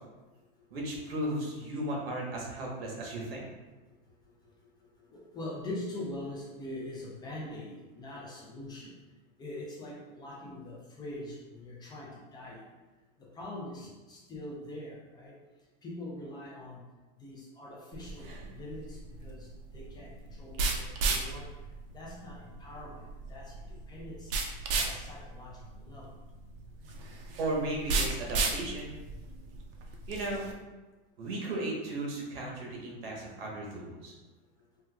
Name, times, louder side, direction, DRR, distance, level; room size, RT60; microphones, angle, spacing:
voice 1, 0.7-3.4 27.4-29.0 30.1-30.5 31.2-34.1, right 1 dB, 85° right, -2 dB, 1.1 m, -35 dB
voice 2, 5.1-9.0 9.4-12.7 13.2-15.3 15.8-16.8 17.2-19.5 19.7-20.1 20.4-21.5 21.9-24.3 24.7-26.1, left 1 dB, 15° left, -4 dB, 0.3 m, -43 dB
sound 1, 17.9-30.5, right 3 dB, 70° right, 0.6 m, -35 dB
4.4 x 2.3 x 2.2 m, 1.2 s
supercardioid pair, 145°, 29 cm